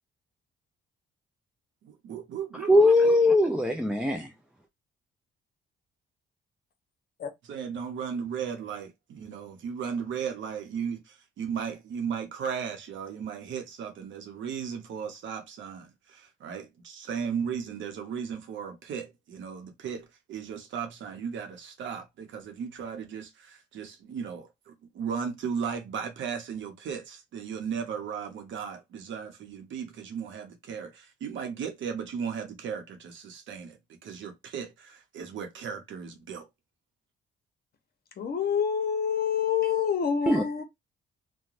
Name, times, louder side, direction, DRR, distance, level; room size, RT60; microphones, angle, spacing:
voice 1, 1.8-3.2 7.4-36.5, right 7 dB, 70° right, 0.8 m, -36 dB
voice 2, 2.7-4.3 40.3-40.4, left 2 dB, 5° right, 0.3 m, -20 dB
voice 3, 38.2-40.6, left 7 dB, 50° left, 0.8 m, -27 dB
3.0 x 2.2 x 2.5 m
cardioid pair, 90°, 20 cm